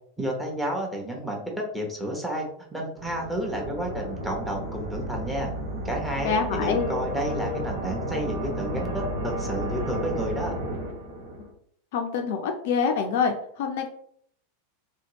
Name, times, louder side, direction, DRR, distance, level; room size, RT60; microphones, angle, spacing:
voice 1, 0.2-5.5 5.8-10.5, equal, 5° right, 0 dB, 0.9 m, -31 dB
sound 1, 3.0-11.5, right 1 dB, 65° right, 0.9 m, -32 dB
voice 2, 6.2-6.9 11.4-11.5 11.9-13.9, left 6 dB, 55° left, 4 dB, 0.4 m, -26 dB
2.9 x 2.8 x 2.9 m, 0.65 s
figure-of-eight pair, 90°, 0 cm